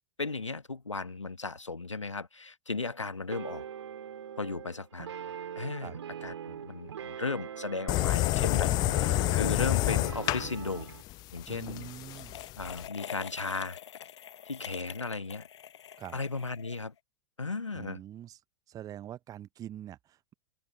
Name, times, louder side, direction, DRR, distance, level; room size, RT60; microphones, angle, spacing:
voice 1, 0.2-3.6 4.4-5.1 5.5-10.9 11.3-11.9 12.6-13.8 14.4-15.5 16.1-16.9 17.4-18.0, left 3 dB, 85° left, 1.5 m, -36 dB
sound 1, 3.3-11.0, right 8 dB, 65° right, 2.6 m, -42 dB
sound 2, 7.9-12.9, left 19 dB, 25° left, 0.3 m, -29 dB
sound 3, 8.2-10.4 10.7-10.9 12.0-17.0, left 9 dB, 65° left, 0.8 m, -45 dB
voice 2, 8.7-9.0 11.5-12.4 16.0-16.2 17.7-18.4 18.7-20.3, right 11 dB, 25° right, 0.8 m, -44 dB
open air
figure-of-eight pair, 100°, 15 cm